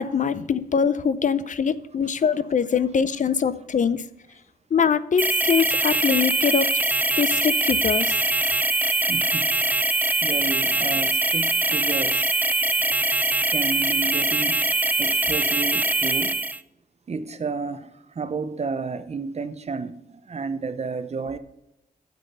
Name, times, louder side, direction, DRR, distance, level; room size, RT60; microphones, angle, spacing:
voice 1, 0.0-4.1 4.7-6.7 7.2-8.2, left 6 dB, 55° left, 0.6 m, -23 dB
sound 1, 5.2-16.6, right 2 dB, 10° right, 0.4 m, -22 dB
voice 2, 9.1-9.5 10.2-12.3 13.5-14.7 15.0-16.4 17.1-21.4, right 4 dB, 45° right, 0.7 m, -31 dB
8.6 x 7.7 x 5.5 m
wide cardioid pair, 90°, 16 cm